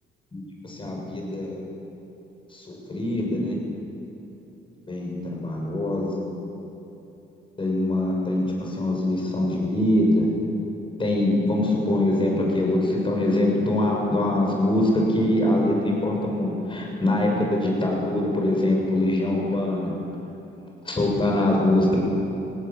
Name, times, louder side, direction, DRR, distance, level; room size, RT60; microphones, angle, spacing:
voice 1, 0.3-1.6 2.5-3.6 4.9-6.1 7.6-10.3 11.0-19.9 20.8-22.0, left 1 dB, 25° left, -1 dB, 6.8 m, -23 dB
18.5 x 18.0 x 8.9 m, 3.0 s
cardioid pair, 100°, 20 cm